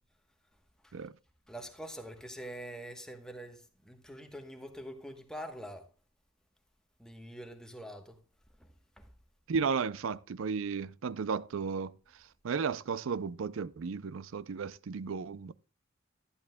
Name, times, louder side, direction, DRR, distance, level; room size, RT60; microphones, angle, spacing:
voice 1, 1.5-5.9 7.0-8.2 8.6-9.1, equal, 5° left, 1.0 m, -45 dB
voice 2, 9.5-11.9 12.4-15.5, right 5 dB, 70° right, 0.4 m, -34 dB
11.0 x 11.0 x 2.2 m
head